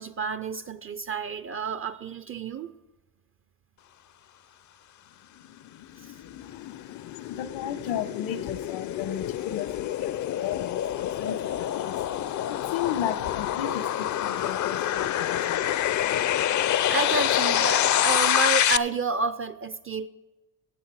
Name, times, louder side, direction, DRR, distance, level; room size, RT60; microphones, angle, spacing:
voice 1, 0.0-2.7 6.0-6.1 16.8-20.1, right 4 dB, 30° right, 13 dB, 0.4 m, -30 dB
sound 1, 5.6-18.8, left 11 dB, 40° left, 0.4 m, -27 dB
voice 2, 6.4-16.4, left 10 dB, 80° left, 13 dB, 1.1 m, -35 dB
14.5 x 8.3 x 4.7 m, 1.2 s
cardioid pair, 95°, 47 cm